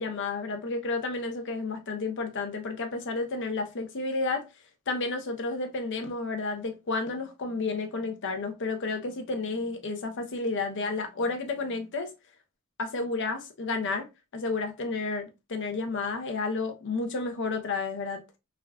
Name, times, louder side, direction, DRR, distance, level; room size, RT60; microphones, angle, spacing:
voice 1, 0.0-4.5 4.9-12.1 12.8-14.1 14.3-18.2, left 3 dB, 55° left, 0.6 m, -31 dB
3.4 x 2.3 x 2.3 m
head